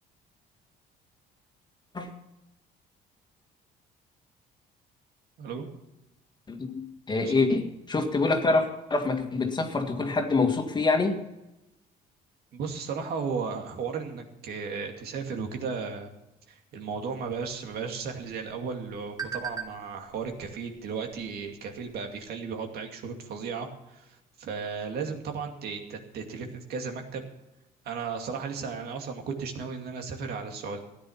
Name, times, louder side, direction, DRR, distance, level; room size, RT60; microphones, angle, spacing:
voice 1, 6.5-11.2, left 3 dB, 25° left, 5 dB, 2.0 m, -26 dB
voice 2, 12.5-16.1 16.5-27.3 27.8-30.8, right 5 dB, 70° right, 3 dB, 2.5 m, -35 dB
sound 1, 17.2-22.3, right 6 dB, 25° right, 2.4 m, -43 dB
15.0 x 10.5 x 5.8 m, 0.95 s
cardioid pair, 110°, 17 cm